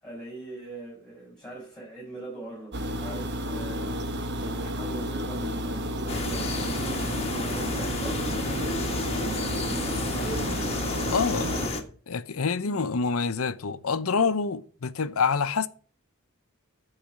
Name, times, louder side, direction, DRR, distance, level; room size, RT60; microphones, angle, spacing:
voice 1, 0.0-10.7 12.6-12.8, right 2 dB, 5° left, 6.5 m, -41 dB
sound 1, 2.7-11.7, equal, 55° right, 1.1 m, -32 dB
sound 2, 6.1-11.8, left 2 dB, 30° left, 1.4 m, -31 dB
voice 2, 11.1-11.5 12.1-15.7, left 5 dB, 80° left, 0.7 m, -26 dB
10.5 x 4.9 x 7.6 m
head